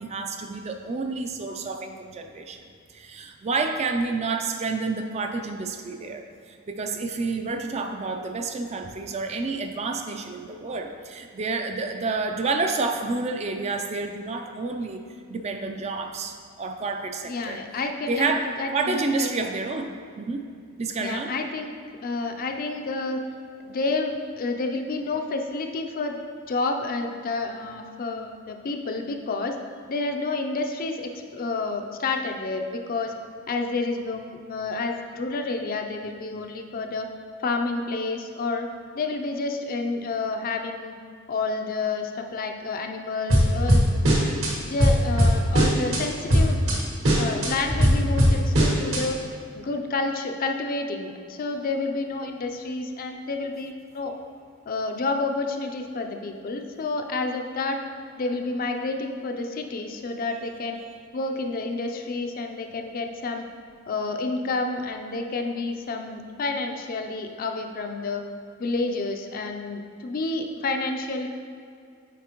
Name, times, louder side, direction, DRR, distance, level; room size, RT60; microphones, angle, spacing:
voice 1, 0.0-2.6 2.9-15.0 15.3-17.6 18.1-18.5 18.7-20.5 20.8-21.3, right 3 dB, 30° right, 5 dB, 0.3 m, -29 dB
voice 2, 17.2-18.3 18.6-19.3 21.0-21.7 22.0-23.2 23.6-26.2 26.5-29.6 29.9-33.1 33.5-37.1 37.4-38.7 38.9-40.9 41.3-43.9 44.2-44.3 44.6-46.6 47.1-49.2 49.5-54.1 54.7-57.8 58.2-60.8 61.1-63.5 63.9-68.2 68.6-71.3, left 3 dB, 40° left, 4 dB, 0.4 m, -29 dB
sound 1, 43.3-44.5 44.8-46.0 46.3-46.8 47.0-49.0, equal, 65° right, 1.3 m, -19 dB
8.2 x 4.3 x 2.9 m, 2.3 s
head